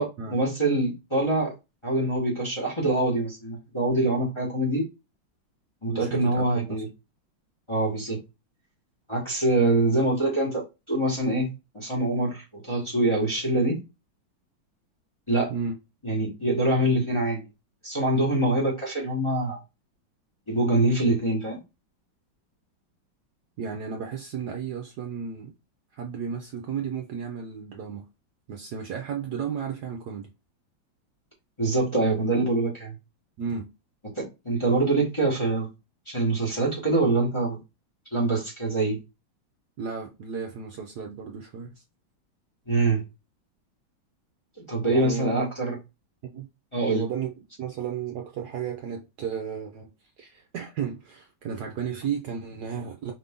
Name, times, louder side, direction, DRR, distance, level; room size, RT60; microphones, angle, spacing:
voice 1, 0.3-1.5 1.8-4.9 5.8-6.9 7.7-8.2 9.1-11.5 11.7-13.8 15.3-15.5 16.0-17.4 17.8-19.6 20.5-21.6 31.6-32.9 34.2-35.7 36.1-37.6 38.1-39.0 42.7-43.0 44.6-45.7 46.7-47.0, right 2 dB, 15° left, 1.1 m, -24 dB
voice 2, 5.9-6.8 15.5-15.8 23.6-25.5 25.9-28.1 28.5-30.3 33.4-33.7 39.8-41.8 44.9-45.3 46.2-46.5 46.9-47.3 47.6-49.9 50.2-53.1, right 6 dB, 70° right, 1.0 m, -33 dB
5.0 x 2.6 x 3.6 m
omnidirectional pair, 2.2 m